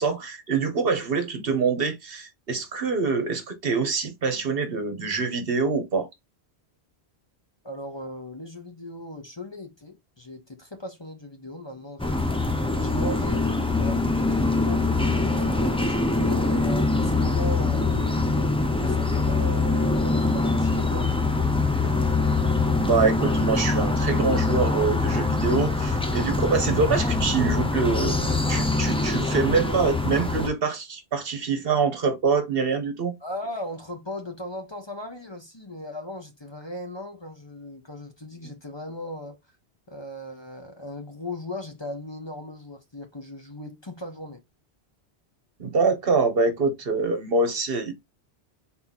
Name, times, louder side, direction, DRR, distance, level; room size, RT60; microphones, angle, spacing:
voice 1, 0.0-6.1 22.8-33.1 45.6-47.9, right 4 dB, 60° right, 1.1 m, -25 dB
voice 2, 7.6-12.3 12.8-14.3 14.6-14.9 15.3-21.1 33.2-39.4 39.9-44.4, left 1 dB, 25° left, 0.9 m, -37 dB
sound 1, 12.0-30.5, left 3 dB, 5° left, 0.5 m, -24 dB
4.0 x 2.9 x 4.0 m
omnidirectional pair, 1.1 m